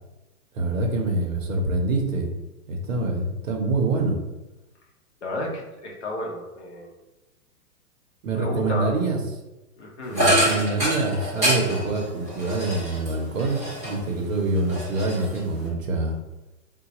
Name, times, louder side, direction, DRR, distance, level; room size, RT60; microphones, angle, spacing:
voice 1, 0.5-2.3 2.7-4.2 8.2-9.2 10.1-16.2, right 2 dB, 55° right, 2 dB, 0.7 m, -25 dB
voice 2, 5.2-6.9 8.3-8.9 9.8-10.2, left 1 dB, 45° left, -2 dB, 0.8 m, -32 dB
sound 1, 10.1-14.1 14.5-15.7, right 1 dB, 10° left, 0.6 m, -26 dB
3.8 x 2.2 x 2.9 m, 1.0 s
hypercardioid pair, 180°, 47 cm